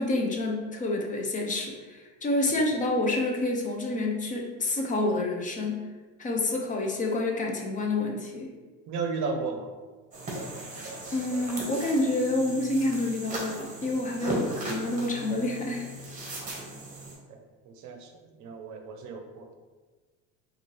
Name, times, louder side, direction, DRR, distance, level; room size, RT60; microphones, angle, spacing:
voice 1, 0.0-5.8 6.2-8.5 11.1-15.9, left 2 dB, 20° left, 1 dB, 0.5 m, -28 dB
voice 2, 8.9-9.7 16.4-16.7 17.3-19.5, right 4 dB, 50° right, 4 dB, 0.6 m, -35 dB
sound 1, 10.1-17.1, right 1 dB, 20° right, 1.1 m, -37 dB
4.1 x 2.5 x 3.1 m, 1.3 s
cardioid pair, 125°, 37 cm